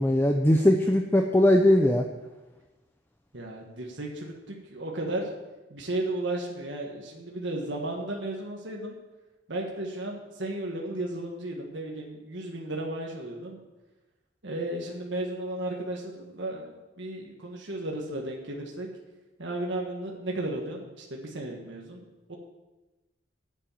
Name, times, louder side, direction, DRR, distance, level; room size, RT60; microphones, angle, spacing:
voice 1, 0.0-2.0, left 1 dB, 10° left, 3 dB, 0.6 m, -20 dB
voice 2, 3.3-5.3 5.7-8.9 9.5-13.6 14.4-18.9 19.4-22.4, right 1 dB, 65° right, 0 dB, 1.6 m, -34 dB
9.0 x 7.4 x 8.7 m, 1.1 s
head